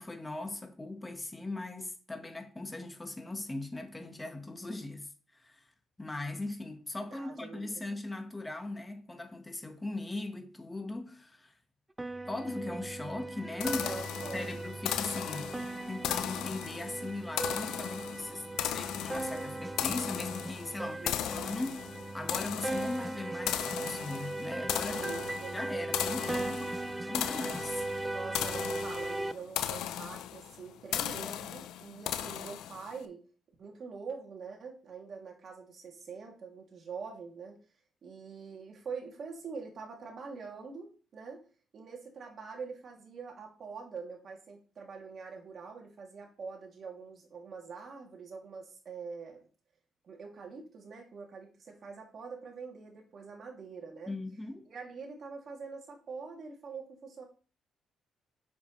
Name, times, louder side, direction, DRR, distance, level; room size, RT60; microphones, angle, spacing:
voice 1, 0.0-5.6 6.0-11.5 12.3-13.9 14.3-15.5 15.9-21.8 22.1-25.0 25.5-26.8 27.1-27.9 54.1-54.6, left 2 dB, 15° left, 1.5 m, -39 dB
voice 2, 7.1-7.8 13.8-14.4 20.7-21.5 24.9-25.6 28.1-33.3 33.6-37.6 38.0-41.4 41.7-49.5 50.0-54.1 54.7-57.2, right 5 dB, 55° right, 2.8 m, -44 dB
sound 1, 12.0-29.3, right 2 dB, 15° right, 0.4 m, -38 dB
sound 2, 13.6-33.0, left 11 dB, 90° left, 0.5 m, -37 dB
7.3 x 7.1 x 3.3 m
cardioid pair, 90°, 0 cm